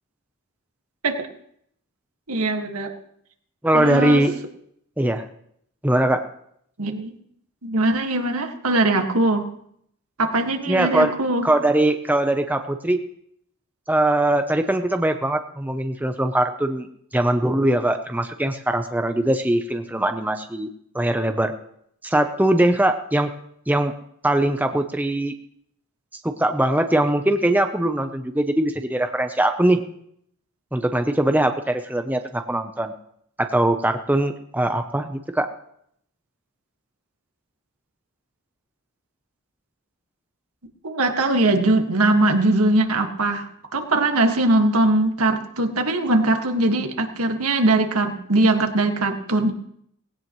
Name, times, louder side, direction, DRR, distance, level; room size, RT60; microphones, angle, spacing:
voice 1, 2.3-2.9 3.7-4.3 6.8-7.1 7.6-9.5 10.2-11.4 40.8-49.5, right 2 dB, 80° right, 4 dB, 1.8 m, -21 dB
voice 2, 3.6-4.3 5.0-5.2 5.8-6.2 10.7-11.1 11.4-13.0 13.9-16.9 17.1-20.7 20.9-21.5 22.0-23.3 23.7-23.9 24.2-25.3 26.2-29.8 30.7-32.9 33.4-35.5, right 1 dB, 5° right, 6 dB, 0.6 m, -21 dB
19.0 x 17.0 x 3.1 m, 0.71 s
head